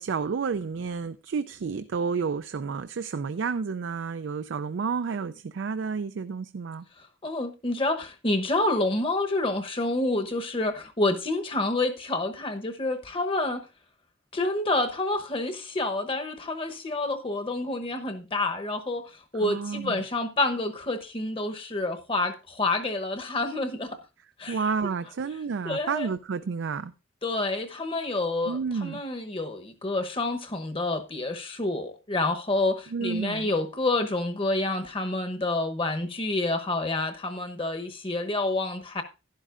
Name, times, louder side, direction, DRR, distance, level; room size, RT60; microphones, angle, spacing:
voice 1, 0.0-6.8 19.4-20.1 24.5-26.9 28.5-29.0 32.9-33.5, right 5 dB, 80° right, 0.4 m, -30 dB
voice 2, 7.2-13.6 14.3-19.0 19.3-24.0 24.4-24.6 25.6-26.1 27.2-39.0, left 2 dB, 30° left, 0.9 m, -28 dB
11.5 x 11.0 x 2.5 m
head